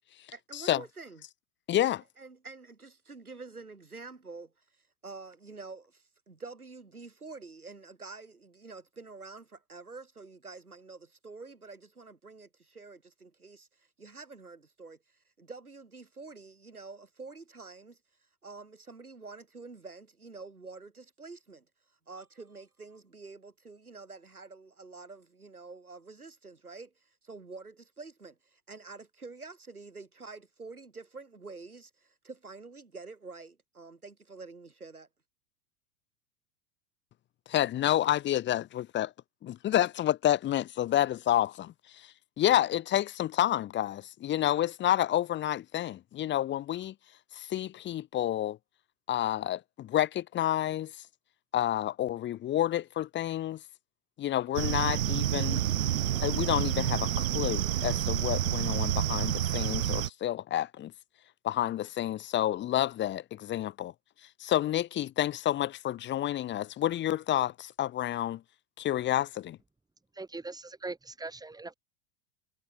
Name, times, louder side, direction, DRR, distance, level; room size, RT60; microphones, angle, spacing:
voice 1, 0.3-1.2 2.2-18.0 18.4-21.7 22.1-35.1, right 3 dB, 85° right, 5.5 m, -47 dB
voice 2, 1.7-2.0 37.5-39.1 39.4-46.9 47.3-48.6 49.1-50.9 51.5-53.6 54.2-55.6 56.2-60.9 61.4-63.9 64.4-68.4 68.8-69.6, left 12 dB, 25° left, 1.1 m, -29 dB
sound 1, 54.5-60.1, right 11 dB, 65° right, 2.1 m, -29 dB
voice 3, 70.2-71.7, right 3 dB, 10° right, 2.8 m, -41 dB
figure-of-eight pair, 85°, 43 cm